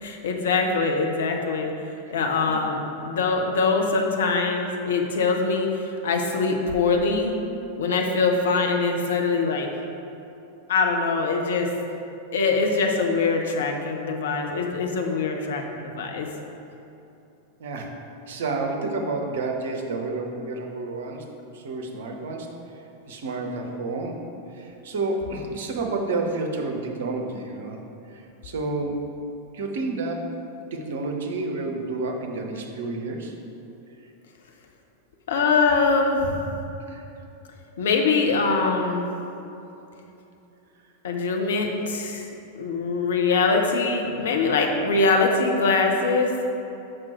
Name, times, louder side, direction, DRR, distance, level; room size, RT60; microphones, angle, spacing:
voice 1, 0.0-1.7 2.1-7.3 7.8-9.7 10.7-11.7 12.3-16.3 35.3-36.2 37.8-39.1 41.0-42.3 42.6-46.3, left 4 dB, 60° left, 2 dB, 0.7 m, -23 dB
voice 2, 17.6-18.0 18.3-21.3 21.5-22.5 23.1-24.2 24.5-27.8 28.1-29.1 29.5-30.3 30.7-33.3 36.5-36.6 36.9-37.0, right 3 dB, 60° right, 2 dB, 0.7 m, -30 dB
6.0 x 4.9 x 4.4 m, 2.9 s
figure-of-eight pair, 90°, 0 cm